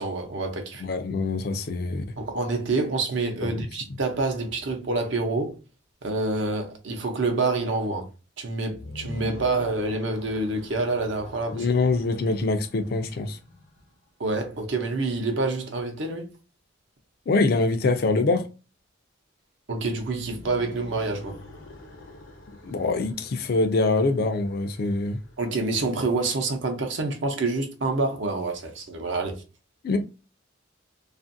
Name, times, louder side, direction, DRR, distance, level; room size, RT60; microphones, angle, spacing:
voice 1, 0.0-0.9 2.2-5.5 6.0-8.1 8.4-11.7 14.2-16.3 19.7-21.3 25.4-29.4, right 3 dB, 70° right, 0.7 m, -27 dB
voice 2, 0.8-2.0 3.6-3.7 11.5-13.4 17.3-18.4 22.6-25.2 29.8-30.0, left 3 dB, 50° left, 0.4 m, -24 dB
sound 1, 8.7-13.9 20.1-25.8, left 1 dB, 85° left, 0.9 m, -45 dB
2.5 x 2.5 x 2.5 m
head